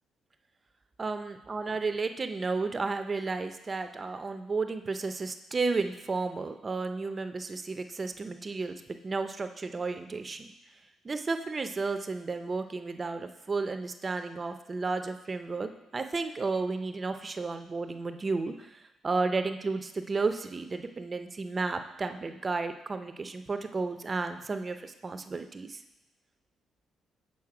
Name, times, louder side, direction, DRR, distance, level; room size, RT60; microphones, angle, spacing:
voice 1, 1.0-10.5 11.0-25.8, right 3 dB, 30° right, 8 dB, 0.5 m, -33 dB
7.3 x 4.2 x 4.8 m, 0.94 s
cardioid pair, 90°, 0 cm